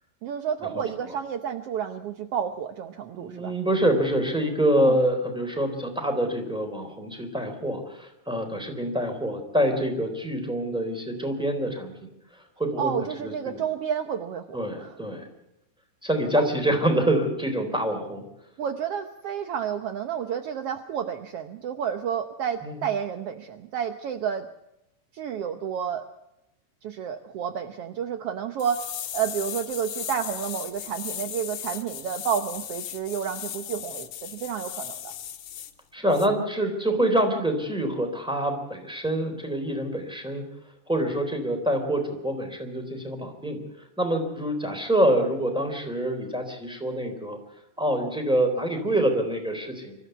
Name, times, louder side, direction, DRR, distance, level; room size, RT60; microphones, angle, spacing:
voice 1, 0.2-3.5 4.8-4.9 12.8-15.0 16.3-16.5 18.6-24.5 25.1-26.0 26.8-28.8 29.1-35.1, right 8 dB, 75° right, 8 dB, 1.3 m, -30 dB
voice 2, 0.7-1.1 3.1-12.1 12.6-13.6 14.5-15.3 16.0-18.2 22.6-22.8 35.9-40.4 40.9-43.6 44.0-47.4 47.8-49.9, right 1 dB, ahead, 5 dB, 3.5 m, -26 dB
sound 1, 28.6-35.7 36.1-36.3, left 10 dB, 70° left, 2.6 m, -37 dB
25.0 x 14.0 x 8.1 m, 0.89 s
omnidirectional pair, 3.9 m